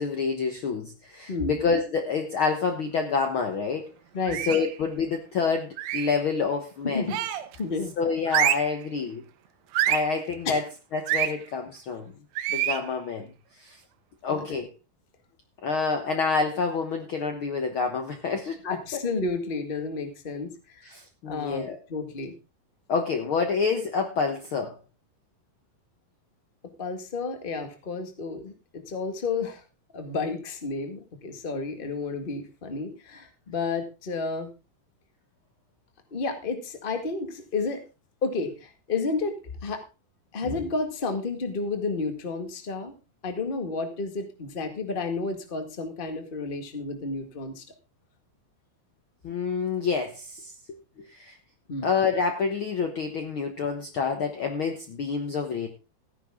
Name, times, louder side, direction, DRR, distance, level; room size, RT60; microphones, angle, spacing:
voice 1, 0.0-3.9 4.4-7.1 8.0-9.2 9.9-10.6 10.9-12.1 12.5-13.8 14.2-14.7 15.6-18.6 18.9-19.0 20.8-21.8 22.9-24.8 49.2-51.4 51.8-55.7, left 5 dB, 85° left, 5 dB, 1.1 m, -28 dB
sound 1, 4.3-4.7 5.8-6.2 7.1-7.6 8.3-8.8 9.7-10.1 11.1-11.3 12.4-12.8, right 12 dB, 75° right, 2.6 m, -26 dB
voice 2, 6.8-7.2 7.6-7.9 10.4-10.6 14.3-14.6 18.6-20.8 21.2-22.3 26.8-29.6 29.9-34.5 36.1-37.8 38.2-39.3 39.6-39.8 40.3-42.9 43.2-47.6 51.7-51.9, left 4 dB, 30° left, 6 dB, 0.9 m, -31 dB
15.0 x 10.5 x 3.6 m, 0.29 s
omnidirectional pair, 4.2 m